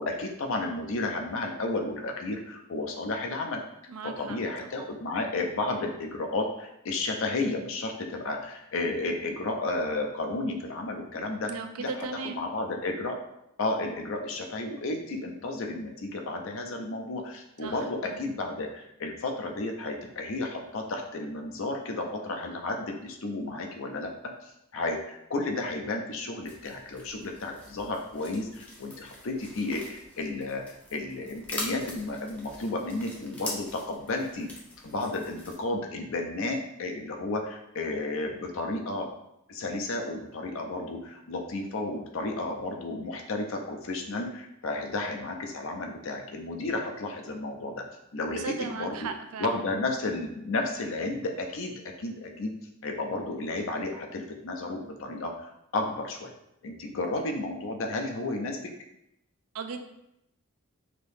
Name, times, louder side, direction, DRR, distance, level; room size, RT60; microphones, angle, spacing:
voice 1, 0.0-3.6 4.0-13.2 13.6-24.1 24.4-30.6 30.9-34.5 34.8-39.1 39.5-47.8 48.1-49.1 49.4-52.5 52.8-56.3 56.6-58.7, left 2 dB, 60° left, 2 dB, 0.5 m, -32 dB
voice 2, 3.9-4.4 11.5-12.4 17.6-18.2 48.3-49.6 59.5-59.8, right 5 dB, 80° right, 6 dB, 0.4 m, -36 dB
sound 1, 26.4-35.5, left 1 dB, 5° left, 0.4 m, -43 dB
2.9 x 2.7 x 3.4 m, 0.81 s
head